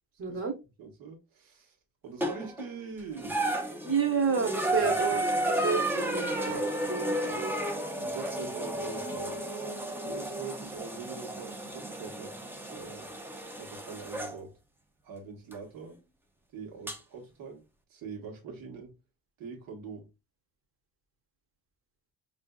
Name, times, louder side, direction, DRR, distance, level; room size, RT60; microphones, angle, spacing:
voice 1, 0.2-0.5 3.8-7.5, right 6 dB, 35° right, 1.1 m, -30 dB
voice 2, 0.8-1.8 2.0-3.6 4.8-4.9 8.0-9.5 10.0-13.1 13.6-14.5 15.0-16.0 16.5-17.6 17.9-18.9 19.4-20.1, right 5 dB, 70° right, 1.4 m, -43 dB
sound 1, 2.2-2.7 3.2-14.4 15.5-15.6 16.9-17.0, right 1 dB, 5° right, 0.4 m, -32 dB
5.8 x 2.6 x 2.2 m
cardioid pair, 170°, 35 cm